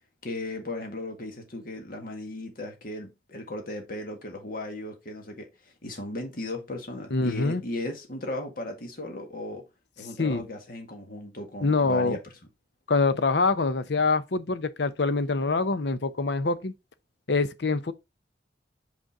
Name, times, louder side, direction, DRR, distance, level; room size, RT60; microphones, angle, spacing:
voice 1, 0.2-9.6 10.0-12.2, left 1 dB, 55° left, 1.8 m, -36 dB
voice 2, 7.1-7.6 10.2-10.5 11.6-12.2 12.9-16.7 17.3-17.9, left 3 dB, 70° left, 0.7 m, -25 dB
5.3 x 5.1 x 3.7 m
head